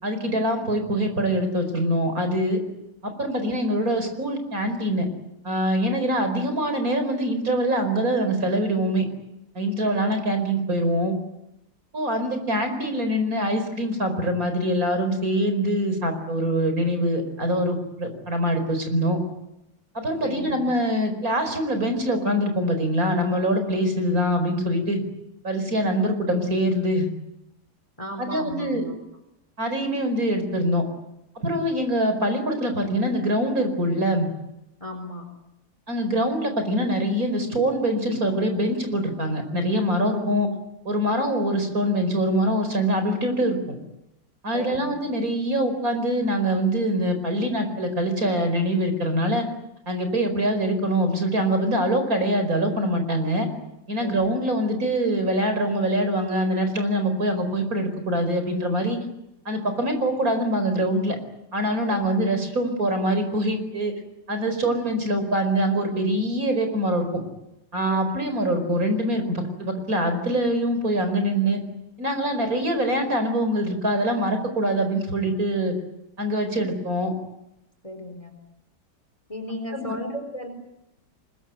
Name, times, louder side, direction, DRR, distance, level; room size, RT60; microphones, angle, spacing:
voice 1, 0.0-2.6 3.0-5.1 5.4-9.1 9.6-11.1 11.9-19.2 19.9-25.0 25.4-27.1 28.2-28.9 29.6-30.8 31.4-34.3 35.9-40.5 40.9-43.6 44.4-49.5 49.9-53.5 53.9-59.0 59.5-61.2 61.5-63.9 64.3-67.2 67.7-71.6 72.0-75.7 76.2-77.1 79.7-79.8, equal, 50° right, 7 dB, 5.2 m, -24 dB
voice 2, 20.2-20.7 28.0-29.0 34.8-35.2 44.5-44.9 54.0-54.4 61.9-62.2 67.9-68.0 77.8-78.4 79.3-80.5, left 1 dB, 15° left, 7 dB, 4.1 m, -35 dB
25.0 x 22.0 x 9.3 m, 0.87 s
omnidirectional pair, 2.0 m